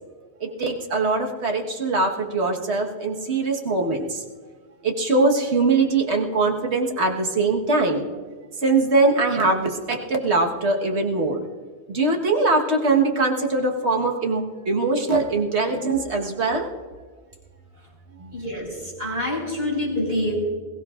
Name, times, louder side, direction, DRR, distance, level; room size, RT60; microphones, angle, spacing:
voice 1, 0.4-4.2 4.8-8.1 8.6-11.4 11.9-16.7 18.2-18.3, right 3 dB, 80° right, 1 dB, 1.7 m, -22 dB
voice 2, 18.3-20.4, left 1 dB, 60° right, -2 dB, 5.2 m, -26 dB
22.0 x 16.5 x 2.5 m, 1.5 s
omnidirectional pair, 1.1 m